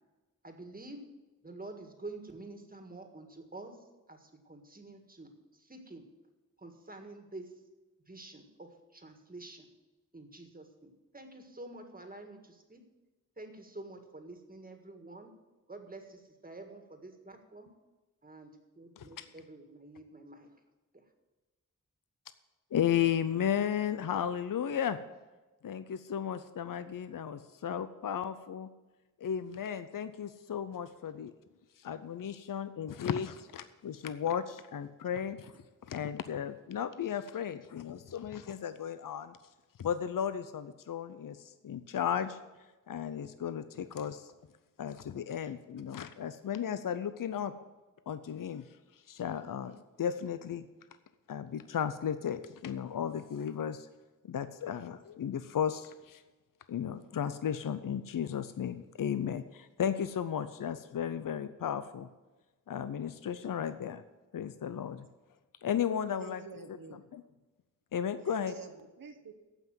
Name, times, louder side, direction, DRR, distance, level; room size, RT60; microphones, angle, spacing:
voice 1, 0.4-1.1 1.4-5.3 5.6-6.1 6.6-7.6 8.1-9.7 10.1-12.8 13.4-15.3 15.7-17.7 18.2-20.5, right 2 dB, 25° right, 5 dB, 1.7 m, -48 dB
voice 2, 19.0-19.3 22.7-25.0 25.6-28.7 29.2-31.3 31.8-35.5 35.9-39.4 39.8-42.4 42.9-44.3 44.8-47.5 48.1-48.6 49.1-50.7 51.3-53.9 54.3-56.2 56.7-62.1 62.7-64.0 64.3-65.1 65.6-66.4 67.1-67.2 67.9-68.5, left 8 dB, 75° left, 12 dB, 0.6 m, -34 dB
voice 3, 66.1-67.0 68.2-69.3, right 5 dB, 85° right, 7 dB, 1.2 m, -47 dB
15.0 x 5.8 x 7.5 m, 1.2 s
wide cardioid pair, 110°, 33 cm